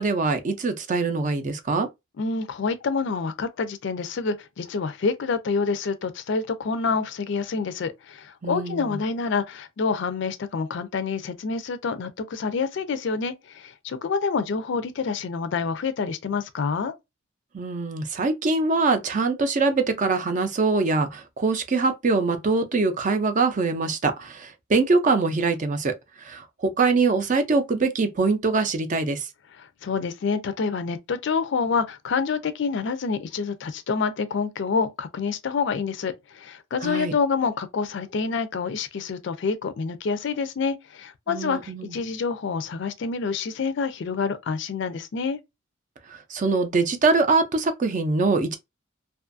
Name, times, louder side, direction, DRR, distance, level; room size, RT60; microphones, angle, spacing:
voice 1, 0.0-1.9 8.4-9.0 17.5-29.3 36.8-37.1 41.3-42.0 46.1-48.6, right 3 dB, 40° right, 0.5 m, -23 dB
voice 2, 2.2-16.9 29.6-45.4, left 5 dB, 60° left, 0.4 m, -27 dB
2.5 x 2.4 x 2.5 m
head